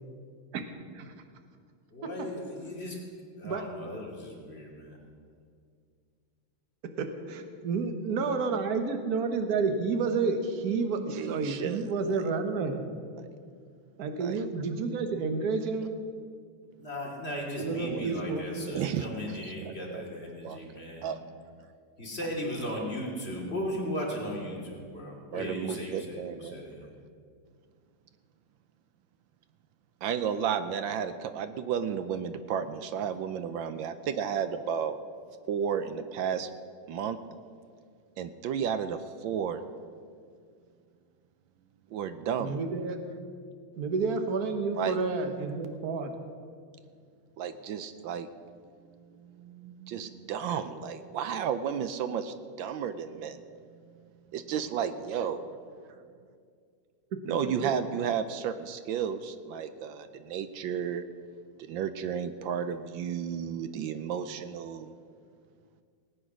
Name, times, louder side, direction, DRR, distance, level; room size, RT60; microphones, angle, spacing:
voice 1, 1.9-3.0 3.4-5.0 16.8-21.1 22.0-26.9, left 1 dB, 30° left, -3 dB, 2.7 m, -37 dB
voice 2, 7.0-12.9 14.0-15.9 17.6-18.7 42.4-43.0 43.8-46.1 57.1-57.4, right 4 dB, 50° right, 6 dB, 1.4 m, -30 dB
voice 3, 11.1-12.2 13.2-13.3 14.2-14.4 17.7-18.2 18.7-20.0 20.4-20.6 21.0-21.2 22.2-22.3 22.7-22.9 25.3-26.7 30.0-35.0 35.5-36.5 36.9-37.2 38.2-39.6 41.9-42.6 44.7-45.0 47.4-48.3 49.2-53.4 54.3-55.4 57.2-61.0 61.6-64.9, right 8 dB, 75° right, 11 dB, 1.3 m, -33 dB
19.0 x 8.7 x 6.2 m, 2.2 s
omnidirectional pair, 2.3 m